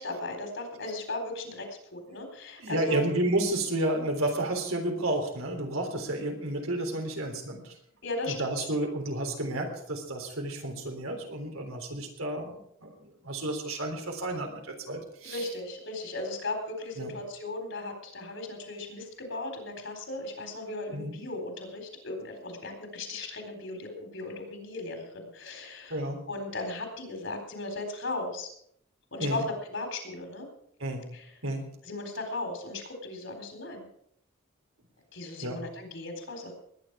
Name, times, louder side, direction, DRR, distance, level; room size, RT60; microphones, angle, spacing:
voice 1, 0.0-3.1 8.0-8.4 15.2-25.9 26.3-28.5 29.1-29.4 29.7-30.5 31.9-33.8 35.1-36.5, left 2 dB, 65° left, 4 dB, 4.1 m, -36 dB
voice 2, 2.6-7.8 8.3-15.5 17.0-17.2 20.9-21.2 25.9-26.3 29.2-29.5 30.8-31.8 35.4-35.7, right 1 dB, 85° right, 3 dB, 3.6 m, -31 dB
20.0 x 10.0 x 4.8 m, 0.69 s
head